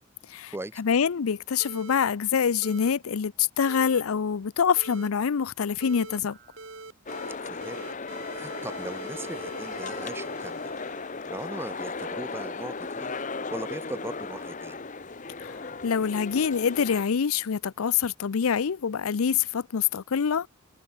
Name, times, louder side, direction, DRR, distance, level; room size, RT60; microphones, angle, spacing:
voice 1, 0.3-6.4 15.4-20.5, left 7 dB, 80° left, 0.5 m, -26 dB
sound 1, 1.6-2.0 2.6-2.9 3.7-4.0 4.8-5.1 5.8-6.2 6.6-7.4 7.6-11.3, right 3 dB, 65° right, 3.5 m, -43 dB
sound 2, 6.3-6.8 7.4-7.9 8.4-9.0 9.5-10.1 10.6-11.2 11.7-12.3 12.8-14.7, right 8 dB, 45° right, 3.0 m, -58 dB
sound 3, 7.1-17.0, left 4 dB, 35° left, 1.0 m, -36 dB
voice 2, 7.4-7.8 8.3-10.6 11.3-13.1 13.5-14.8, right 2 dB, 10° right, 0.4 m, -39 dB
head